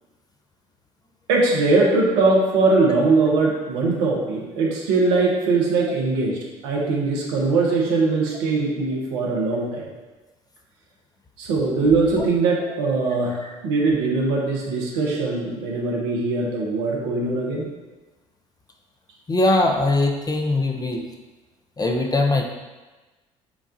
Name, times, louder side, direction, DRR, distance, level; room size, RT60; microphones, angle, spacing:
voice 1, 1.3-9.9 11.4-17.7, right 3 dB, 75° right, -2 dB, 0.9 m, -21 dB
voice 2, 19.3-21.1 21.8-22.4, left 2 dB, 25° left, 3 dB, 0.6 m, -21 dB
7.0 x 2.4 x 2.6 m, 1.2 s
hypercardioid pair, 55°, 17 cm